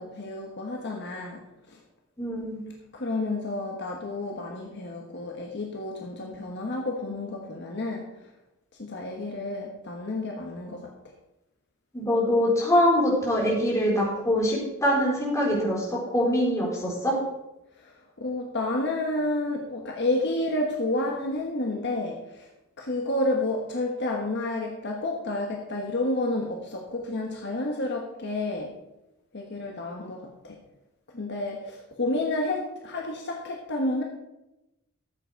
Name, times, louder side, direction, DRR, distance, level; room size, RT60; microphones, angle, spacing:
voice 1, 0.0-1.4 1.7-1.8 2.9-8.3 8.8-11.1 17.8-22.5 22.8-28.7 29.3-30.6 31.1-34.0, left 2 dB, 55° left, 0 dB, 1.4 m, -30 dB
voice 2, 2.2-2.6 11.9-17.1, equal, 15° left, -4 dB, 3.8 m, -24 dB
13.0 x 7.9 x 4.7 m, 0.92 s
head